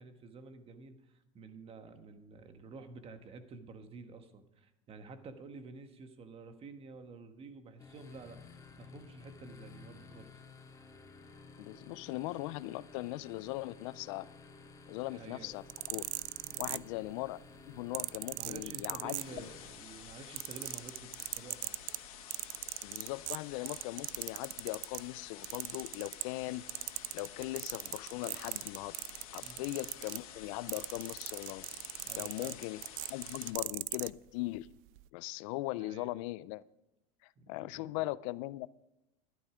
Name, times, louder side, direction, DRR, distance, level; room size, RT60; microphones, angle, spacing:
voice 1, 0.0-8.4 8.8-10.3 15.0-15.5 16.4-16.8 18.3-21.8 29.4-29.7 32.0-32.6 35.8-36.1 37.4-38.0, right 4 dB, 35° right, 8 dB, 1.4 m, -50 dB
sound 1, 7.8-19.7, left 4 dB, 20° left, 2.1 m, -54 dB
voice 2, 11.6-14.3 14.9-16.0 16.6-17.4 17.7-19.5 22.8-26.6 27.1-29.0 29.3-31.7 32.1-32.8 33.1-34.7 35.1-36.6 37.2-38.8, left 19 dB, 70° left, 19 dB, 0.5 m, -39 dB
sound 2, 15.5-17.2 17.9-19.7 20.0-25.1 25.4-26.4 26.7-34.1 34.9-35.0, right 22 dB, 75° right, 0.4 m, -39 dB
sound 3, 19.2-33.5, left 10 dB, 90° left, 2.0 m, -51 dB
11.5 x 11.0 x 5.0 m, 0.94 s
supercardioid pair, 120°, 18 cm